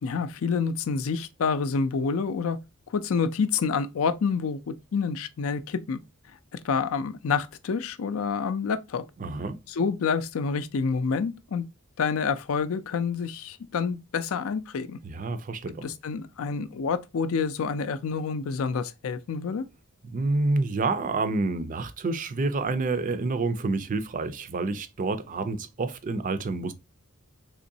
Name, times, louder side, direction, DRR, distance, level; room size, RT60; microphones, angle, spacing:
voice 1, 0.0-2.6 2.9-6.0 6.5-9.0 9.7-11.6 12.0-15.0 15.8-19.6, left 5 dB, 70° left, 0.4 m, -28 dB
voice 2, 9.2-9.6 15.0-15.9 20.0-26.7, right 3 dB, 40° right, 0.4 m, -28 dB
3.7 x 3.0 x 2.6 m
head